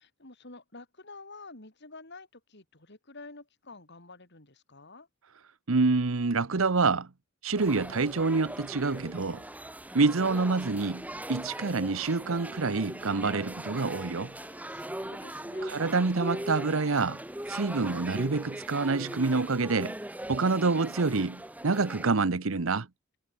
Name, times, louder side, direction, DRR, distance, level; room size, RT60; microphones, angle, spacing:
voice 1, 0.0-5.1 14.3-16.1, left 3 dB, 55° left, 4.7 m, -49 dB
voice 2, 5.7-7.1 7.4-9.4 9.9-14.3 15.6-17.2 17.5-20.0 20.3-22.9, right 3 dB, 75° right, 0.9 m, -27 dB
sound 1, 7.5-22.1, right 1 dB, 5° right, 1.8 m, -40 dB
head